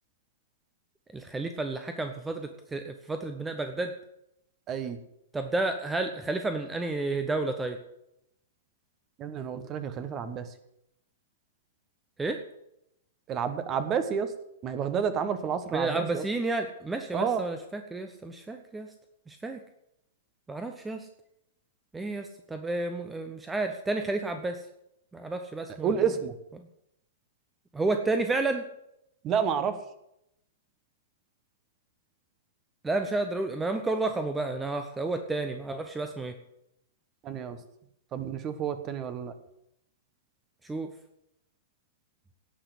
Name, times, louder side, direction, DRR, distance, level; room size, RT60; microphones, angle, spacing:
voice 1, 1.1-3.9 5.3-7.8 12.2-12.4 15.7-18.9 19.3-19.6 20.5-21.1 21.9-24.6 25.1-25.9 26.6-26.7 27.7-28.6 32.8-36.3 40.6-40.9, right 2 dB, 10° right, 6 dB, 0.9 m, -31 dB
voice 2, 4.7-5.0 9.2-10.5 13.3-14.3 14.6-16.2 17.1-17.4 25.8-26.3 29.2-29.8 37.2-37.6 38.1-39.3, right 7 dB, 25° right, 12 dB, 1.3 m, -30 dB
17.5 x 6.0 x 8.0 m, 0.80 s
figure-of-eight pair, 105°, 0 cm